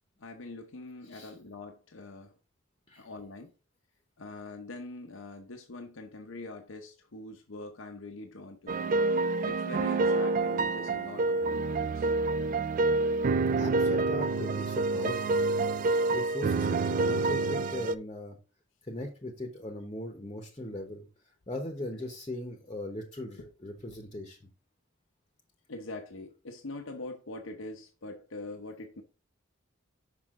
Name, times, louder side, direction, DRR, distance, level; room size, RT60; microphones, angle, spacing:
voice 1, 0.2-2.3 3.0-3.5 4.2-8.8 9.4-12.1 22.0-22.1 23.4-23.5 25.7-29.0, left 2 dB, 85° left, 0.8 m, -43 dB
sound 1, 8.7-18.0, right 3 dB, 40° right, 0.3 m, -27 dB
voice 2, 13.6-15.4 16.1-18.4 18.9-21.1 21.5-24.4, left 1 dB, 25° left, 1.0 m, -39 dB
6.0 x 5.7 x 3.7 m
head